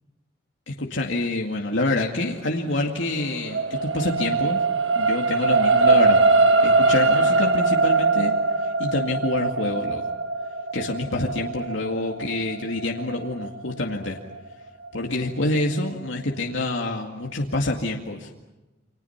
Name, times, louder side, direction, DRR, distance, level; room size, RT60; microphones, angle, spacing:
voice 1, 0.7-4.6 4.9-6.2 6.6-10.0 10.7-14.2 14.9-18.3, left 2 dB, 85° left, 0 dB, 2.2 m, -27 dB
sound 1, 2.7-15.2 15.8-15.9, right 3 dB, 75° right, 1.5 m, -22 dB
29.5 x 26.0 x 5.9 m, 1.1 s
head